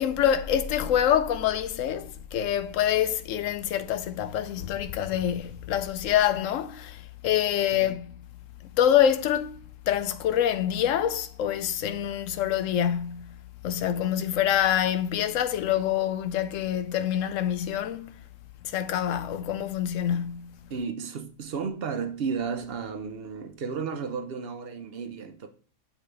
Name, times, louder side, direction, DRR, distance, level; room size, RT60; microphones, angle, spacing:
voice 1, 0.0-8.2 8.7-9.6 9.9-13.3 13.6-18.2 18.6-20.6, left 10 dB, 75° left, 0.9 m, -26 dB
voice 2, 20.7-25.5, right 5 dB, 50° right, 0.9 m, -33 dB
7.1 x 5.1 x 3.3 m
omnidirectional pair, 1.4 m